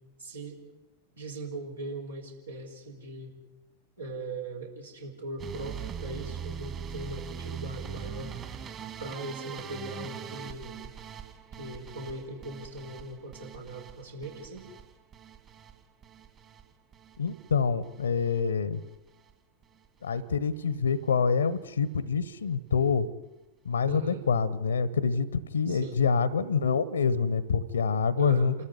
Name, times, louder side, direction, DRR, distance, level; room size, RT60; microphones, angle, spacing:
voice 1, 0.2-0.6 1.2-3.4 4.0-8.3 9.0-10.8 11.6-14.7 23.8-24.2 25.7-26.0 28.2-28.6, right 2 dB, 75° right, 1 dB, 4.9 m, -39 dB
sound 1, 5.4-17.5 17.8-18.4 18.7-19.3 19.6-19.9 20.2-20.3 20.5-20.6, right 8 dB, 30° right, 2.4 m, -42 dB
voice 2, 17.2-18.8 20.0-23.1 23.6-28.6, left 5 dB, 70° left, 19 dB, 1.1 m, -26 dB
28.0 x 14.0 x 9.7 m, 1.0 s
figure-of-eight pair, 90°, 0 cm